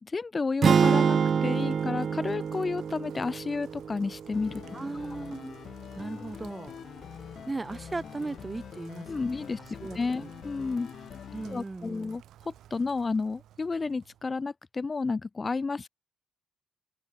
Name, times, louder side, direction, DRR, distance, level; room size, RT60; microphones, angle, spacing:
voice 1, 0.0-4.6 9.1-10.9 11.5-15.9, left 4 dB, 30° left, 1.2 m, -31 dB
sound 1, 0.6-4.8, right 6 dB, 50° right, 0.5 m, -26 dB
Rain, 0.7-14.4, right 12 dB, 75° right, 5.9 m, -55 dB
sound 2, 4.3-11.6, left 8 dB, 60° left, 0.8 m, -44 dB
voice 2, 4.7-5.6 6.0-6.7 7.5-9.4 9.8-10.3 11.3-12.2, right 3 dB, 20° right, 0.9 m, -37 dB
cardioid pair, 90°, 0 cm